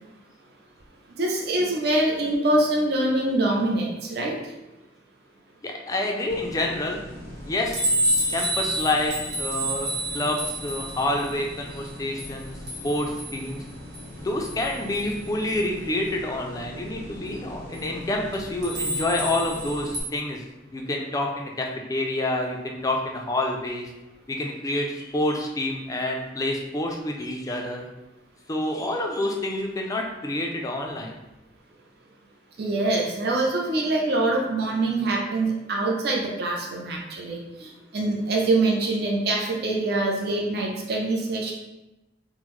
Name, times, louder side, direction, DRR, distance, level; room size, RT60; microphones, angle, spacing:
voice 1, 1.2-4.4 32.6-41.5, right 2 dB, 55° right, -1 dB, 0.5 m, -24 dB
voice 2, 5.6-7.0 7.5-7.8 8.2-12.6 12.8-13.6 14.2-20.4 20.7-23.9 24.3-27.9 28.5-31.1, left 1 dB, 20° left, 1 dB, 0.3 m, -28 dB
sound 1, 6.3-20.0, right 1 dB, 75° right, 1.0 m, -31 dB
3.7 x 2.0 x 3.0 m, 0.98 s
head